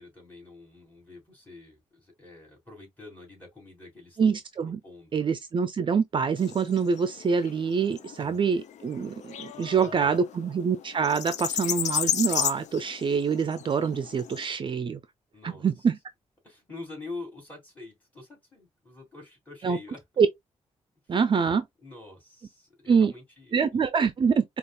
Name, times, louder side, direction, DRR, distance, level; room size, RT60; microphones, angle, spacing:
voice 1, 0.0-4.4 4.6-5.3 8.2-8.4 9.3-10.2 15.3-15.9 16.4-20.0 21.8-23.8, left 2 dB, 15° left, 2.8 m, -46 dB
voice 2, 4.2-4.8 5.1-15.0 15.4-16.0 19.6-19.8 20.2-20.3 21.1-21.7 22.9-23.1 23.5-24.4, right 6 dB, 45° right, 0.5 m, -25 dB
sound 1, 6.4-14.4, left 9 dB, 75° left, 0.5 m, -33 dB
5.1 x 2.4 x 2.3 m
cardioid pair, 95°, 12 cm